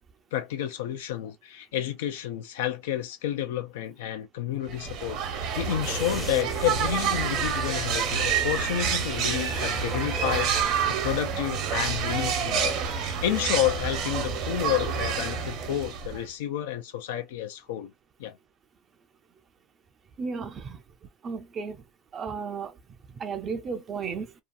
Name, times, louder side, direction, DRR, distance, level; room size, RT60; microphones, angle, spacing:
voice 1, 0.3-17.9 18.2-18.3, left 11 dB, 90° left, 0.4 m, -30 dB
sound 1, 4.7-16.3, right 6 dB, 60° right, 0.9 m, -28 dB
sound 2, 5.8-10.6 10.9-11.0, left 2 dB, 15° left, 0.6 m, -42 dB
voice 2, 20.2-20.8 21.2-21.8 22.1-22.7 23.2-24.3, right 5 dB, 35° right, 0.5 m, -33 dB
2.7 x 2.3 x 2.5 m
supercardioid pair, 120°, 0 cm